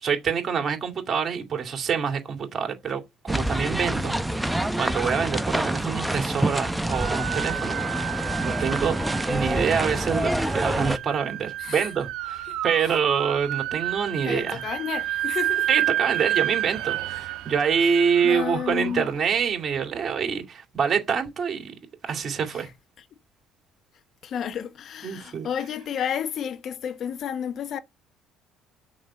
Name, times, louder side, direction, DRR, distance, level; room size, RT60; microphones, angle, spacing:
voice 1, 0.0-9.0 9.3-14.6 15.7-21.7 22.0-22.7 25.0-25.5, right 6 dB, 45° right, 2.4 m, -26 dB
sound 1, 3.3-11.0, right 1 dB, 5° right, 0.8 m, -27 dB
sound 2, 6.9-20.0, right 14 dB, 75° right, 1.3 m, -31 dB
voice 2, 11.6-11.9 12.5-12.9 14.2-15.7 18.2-19.1 22.5-22.7 24.2-27.8, left 8 dB, 60° left, 0.9 m, -31 dB
6.4 x 5.4 x 7.1 m
supercardioid pair, 70°, 0 cm